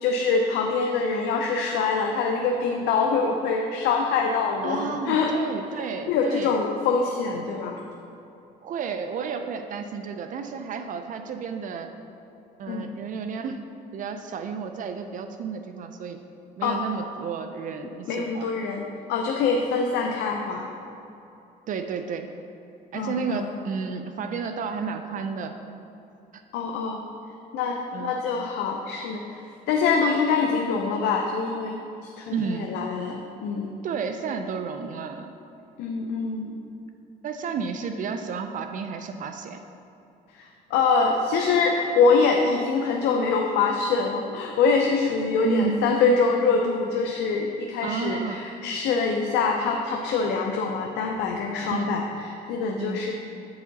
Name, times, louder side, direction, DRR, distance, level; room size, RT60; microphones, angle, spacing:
voice 1, 0.0-5.3 6.1-7.8 12.7-12.9 16.6-16.8 18.1-20.7 22.9-23.5 26.5-27.0 27.5-31.8 32.2-33.7 35.8-36.5 40.3-53.1, left 4 dB, 85° left, 1 dB, 0.6 m, -24 dB
voice 2, 4.6-6.6 8.6-11.9 12.6-13.6 13.9-16.2 16.6-18.5 21.7-22.3 22.9-25.5 27.9-28.2 32.3-32.8 33.8-35.3 37.2-39.6 45.4-45.9 47.8-48.5 51.6-51.9 52.8-53.1, right 5 dB, 50° right, 7 dB, 0.4 m, -31 dB
8.3 x 4.8 x 4.0 m, 2.8 s
cardioid pair, 110°, 17 cm